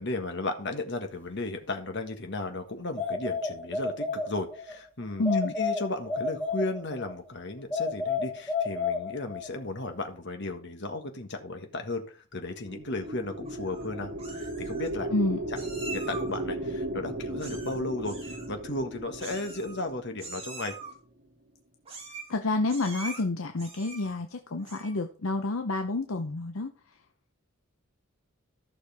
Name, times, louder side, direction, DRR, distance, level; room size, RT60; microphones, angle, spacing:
voice 1, 0.0-15.1 15.9-20.7, left 2 dB, 60° left, 5 dB, 1.6 m, -35 dB
sound 1, 3.0-4.7 5.3-7.2 7.7-9.6, left 4 dB, 10° left, 1.4 m, -31 dB
voice 2, 5.2-5.5 15.1-15.4 22.3-26.7, left 2 dB, 75° left, 5 dB, 0.8 m, -29 dB
sound 2, 12.5-21.0, right 1 dB, 55° right, 2.2 m, -36 dB
Meow, 13.5-13.9 14.2-14.9 15.6-16.4 17.4-17.8 18.0-18.5 19.2-19.9 20.2-20.9 21.9-22.4 22.7-23.2 23.6-24.2 24.6-25.0, right 3 dB, 30° right, 3.1 m, -43 dB
14.5 x 6.4 x 3.6 m, 0.40 s
head